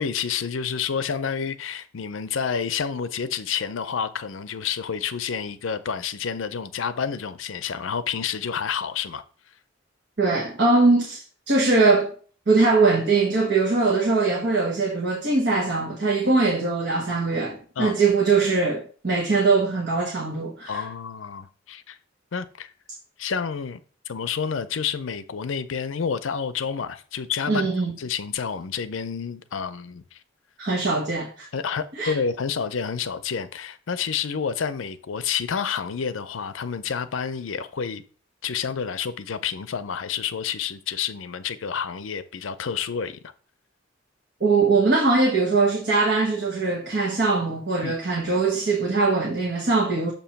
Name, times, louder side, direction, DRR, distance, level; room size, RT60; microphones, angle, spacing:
voice 1, 0.0-9.2 17.8-18.0 20.7-22.0 22.3-22.7 23.2-23.8 24.1-27.6 28.0-30.2 31.5-38.0 38.4-43.2 47.8-48.0, left 6 dB, 80° left, 0.6 m, -29 dB
voice 2, 10.2-12.1 12.5-20.8 27.5-27.9 30.6-31.5 32.0-32.1 44.4-50.1, right 3 dB, 60° right, 1.1 m, -21 dB
7.0 x 3.0 x 5.8 m
head